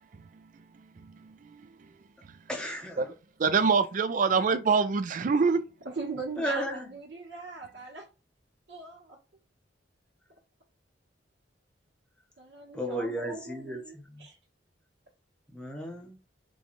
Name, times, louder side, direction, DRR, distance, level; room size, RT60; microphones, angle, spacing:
voice 1, 1.0-1.4 3.0-3.1 3.4-5.6, right 5 dB, 45° right, 0.4 m, -24 dB
voice 2, 2.5-3.1 6.4-6.9 12.7-14.3 15.5-16.2, equal, 5° left, 0.7 m, -34 dB
voice 3, 5.8-8.1 8.7-9.2 12.4-14.4, right 3 dB, 65° right, 1.1 m, -40 dB
4.0 x 2.3 x 3.0 m
head